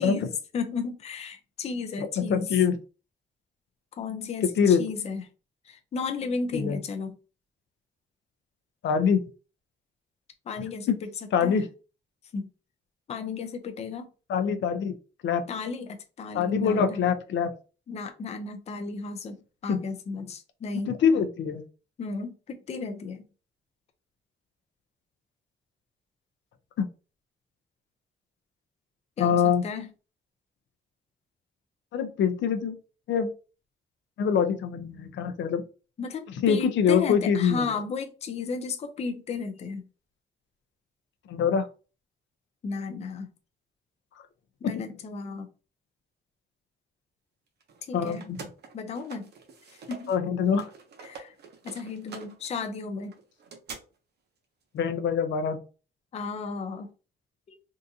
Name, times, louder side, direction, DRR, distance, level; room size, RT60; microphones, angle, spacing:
voice 1, 0.0-2.5 4.0-5.2 5.6-7.2 10.5-11.7 12.3-12.5 13.1-14.1 15.5-17.0 17.9-21.0 22.0-23.2 29.2-29.9 36.0-39.9 42.6-43.3 44.6-45.5 47.8-48.3 48.7-49.3 49.7-50.1 51.0-51.3 51.6-53.2 56.1-56.9, left 4 dB, 35° left, 7 dB, 0.4 m, -34 dB
voice 2, 2.2-2.8 4.6-4.8 6.5-6.8 8.8-9.2 10.9-11.0 11.3-11.7 14.3-14.9 15.2-15.4 16.3-17.5 19.7-19.8 20.9-21.6 26.8-26.9 29.2-29.6 31.9-32.8 33.1-33.3 34.2-35.6 36.4-37.7 41.3-41.7 44.7-44.8 47.9-48.4 50.1-50.7 54.7-55.6, left 7 dB, 85° left, 8 dB, 0.6 m, -24 dB
sound 1, 47.6-50.2 50.5-53.8, right 5 dB, 65° right, 0.8 m, -46 dB
3.6 x 2.5 x 2.7 m, 0.34 s
wide cardioid pair, 175°, 19 cm